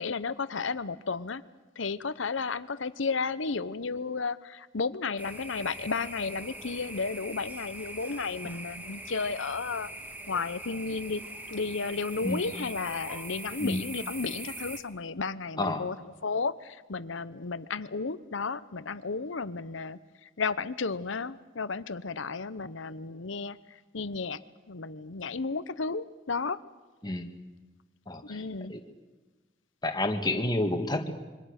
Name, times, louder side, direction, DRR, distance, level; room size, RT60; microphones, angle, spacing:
voice 1, 0.0-1.4 1.8-9.9 10.3-11.2 11.5-23.6 23.9-24.4 24.7-26.6 28.2-28.7, left 4 dB, 75° left, 15 dB, 0.9 m, -33 dB
sound 1, 5.2-14.8, right 1 dB, 10° right, 1.7 m, -42 dB
voice 2, 15.6-15.9 27.0-27.3 28.1-28.4 28.7-28.8 29.8-31.1, left 1 dB, 20° left, 5 dB, 1.8 m, -29 dB
26.5 x 24.0 x 6.7 m, 1.3 s
head